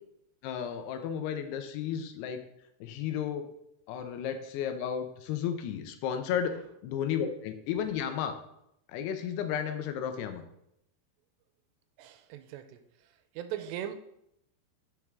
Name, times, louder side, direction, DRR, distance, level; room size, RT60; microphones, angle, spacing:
voice 1, 0.4-2.4 2.8-3.5 3.9-6.6 6.8-8.4 8.9-10.4, left 8 dB, 80° left, 8 dB, 2.7 m, -33 dB
voice 2, 12.0-14.0, right 11 dB, 85° right, 9 dB, 2.8 m, -40 dB
10.5 x 6.6 x 3.6 m, 0.79 s
omnidirectional pair, 5.0 m